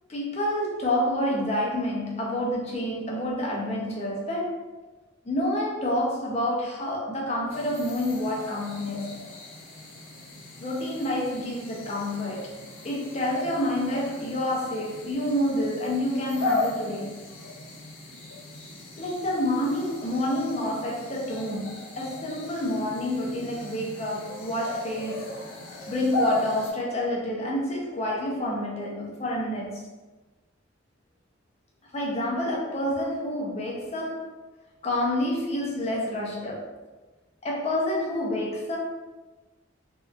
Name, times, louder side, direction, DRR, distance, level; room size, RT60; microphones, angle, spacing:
voice 1, 0.1-4.6 5.2-9.3 10.6-17.2 19.0-25.4 25.9-29.8 31.9-34.4 34.8-36.7 37.4-38.8, left 1 dB, 35° left, 0.5 m, -28 dB
sound 1, 7.5-26.7, left 2 dB, 85° left, 0.5 m, -36 dB
2.7 x 2.3 x 2.3 m
head